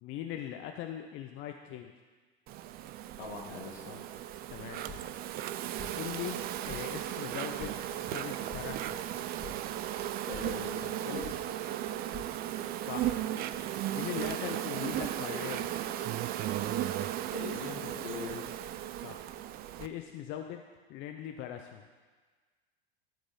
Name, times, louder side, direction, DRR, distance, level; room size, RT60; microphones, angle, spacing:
voice 1, 0.0-1.9 4.5-4.8 5.9-9.0 12.8-13.3 13.9-15.7 19.0-19.3 19.8-20.6 20.9-21.8, left 10 dB, 40° left, 5 dB, 0.6 m, -40 dB
Insect, 2.5-19.9, right 12 dB, 30° right, 0.4 m, -36 dB
voice 2, 3.2-4.0 10.3-11.4 17.3-18.5, left 4 dB, 70° left, -2 dB, 2.1 m, -41 dB
sound 1, 4.7-5.2 5.5-6.1 6.4-7.0 7.3-7.9 8.2-8.9 9.1-9.8 10.0-11.5 11.8-12.5 12.7-13.5, left 2 dB, 10° right, 2.0 m, -49 dB
13.0 x 4.7 x 4.0 m, 1.4 s
figure-of-eight pair, 80°, 31 cm